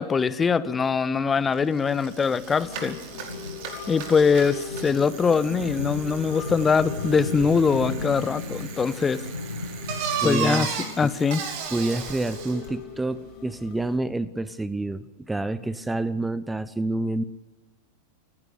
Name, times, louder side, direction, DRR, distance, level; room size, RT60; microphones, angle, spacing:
voice 1, 0.0-3.0 3.9-9.2 10.2-10.7 11.0-11.4, left 5 dB, 15° left, 17 dB, 1.2 m, -22 dB
sound 1, 1.2-10.7, left 3 dB, 80° left, 1.8 m, -36 dB
Bicycle, 1.5-1.6 1.9-12.7, right 6 dB, 50° right, 5.1 m, -36 dB
sound 2, 2.6-14.0, left 6 dB, 40° left, 5.3 m, -41 dB
voice 2, 10.2-10.7 11.0-11.1 11.7-17.2, right 2 dB, 5° right, 16 dB, 0.9 m, -28 dB
29.0 x 16.0 x 8.2 m, 1.1 s
figure-of-eight pair, 90°, 0 cm